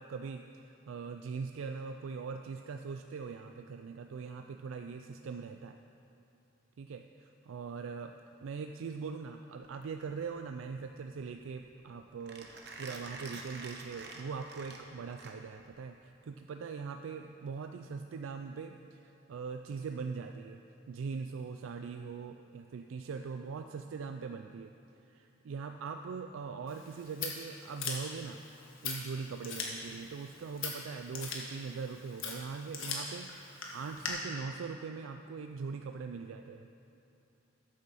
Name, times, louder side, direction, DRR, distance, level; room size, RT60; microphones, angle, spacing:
voice 1, 0.0-5.8 6.8-12.5 12.8-20.6 20.9-24.7 25.1-28.4 28.8-36.7, right 5 dB, 90° right, 6 dB, 0.4 m, -41 dB
Mechanisms, 9.6-15.7, right 3 dB, 55° right, 1.0 m, -48 dB
Scissors, 26.7-34.1, left 5 dB, 90° left, 1.6 m, -42 dB
13.5 x 8.3 x 4.1 m, 2.8 s
head